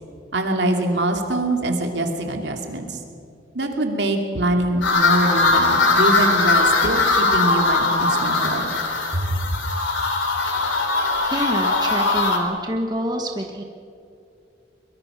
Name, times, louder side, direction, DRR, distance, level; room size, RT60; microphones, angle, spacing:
voice 1, 0.3-2.9 3.5-8.7 9.1-9.4, right 1 dB, 70° right, 4 dB, 2.5 m, -24 dB
sound 1, 4.8-12.4, left 3 dB, 85° left, 2.9 m, -20 dB
voice 2, 11.2-13.6, equal, 20° right, 3 dB, 1.2 m, -26 dB
23.0 x 22.5 x 5.9 m, 2.5 s
head